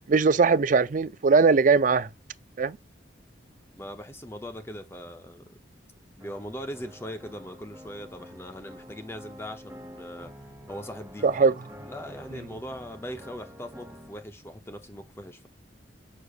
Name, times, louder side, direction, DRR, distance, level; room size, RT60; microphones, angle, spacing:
voice 1, 0.1-2.1 2.6-2.8 11.2-11.5, right 4 dB, 45° right, 0.4 m, -20 dB
voice 2, 3.8-5.6 6.2-10.3 10.7-11.5 11.8-15.5, equal, 15° left, 0.8 m, -40 dB
sound 1, 6.2-14.2, equal, 15° right, 0.9 m, -47 dB
6.5 x 6.3 x 2.4 m
head